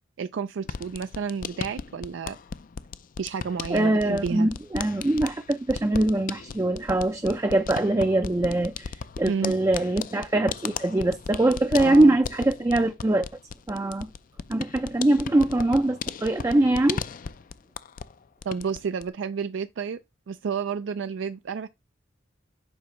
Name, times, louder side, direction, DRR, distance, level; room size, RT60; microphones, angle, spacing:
voice 1, 0.2-2.4 3.2-4.5 9.3-9.5 11.8-12.1 18.4-20.0 20.3-21.7, right 6 dB, 80° right, 0.4 m, -30 dB
sound 1, 0.6-18.1 18.4-19.1, left 6 dB, 45° left, 0.4 m, -37 dB
voice 2, 3.7-13.3 13.7-14.1 14.5-17.0, right 1 dB, 15° right, 0.4 m, -23 dB
8.0 x 2.8 x 5.5 m
head